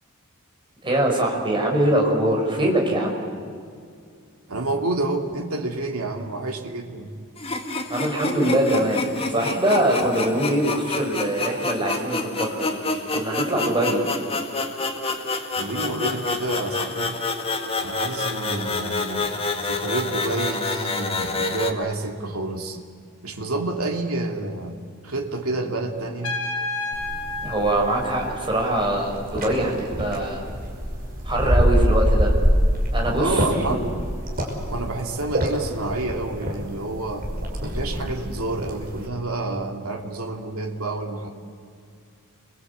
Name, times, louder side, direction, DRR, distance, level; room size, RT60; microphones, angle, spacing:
voice 1, 0.8-3.2 7.9-12.8 13.1-14.1 27.4-30.4 31.2-32.3 32.9-33.8, right 1 dB, 20° right, 0 dB, 5.7 m, -23 dB
voice 2, 4.5-7.1 15.5-17.2 17.8-19.3 19.6-22.8 23.2-24.8 25.0-26.4 33.2-34.0 34.7-37.3 37.6-41.3, right 2 dB, 70° right, 2 dB, 3.0 m, -29 dB
sound 1, 7.4-21.7, left 3 dB, 25° left, 2.1 m, -28 dB
Trumpet, 26.2-28.9, left 3 dB, 70° left, 5.2 m, -31 dB
sound 2, 26.9-39.1, equal, 40° right, 5.9 m, -25 dB
29.5 x 23.0 x 8.4 m, 2.3 s
head